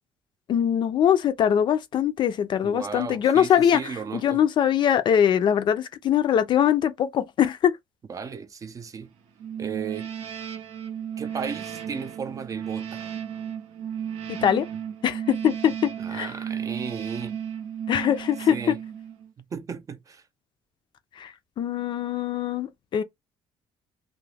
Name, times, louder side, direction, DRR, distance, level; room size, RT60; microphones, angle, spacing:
voice 1, 0.5-7.8 14.3-14.7 15.0-16.3 17.9-18.7 21.2-23.0, left 9 dB, 50° left, 0.4 m, -22 dB
voice 2, 2.6-4.4 8.1-9.1 9.6-10.1 11.2-13.1 16.0-17.4 18.5-18.8 19.4-20.2, right 6 dB, 30° right, 0.4 m, -35 dB
sound 1, 9.4-19.3, right 8 dB, 80° right, 0.6 m, -34 dB
2.3 x 2.0 x 3.2 m
cardioid pair, 105°, 10 cm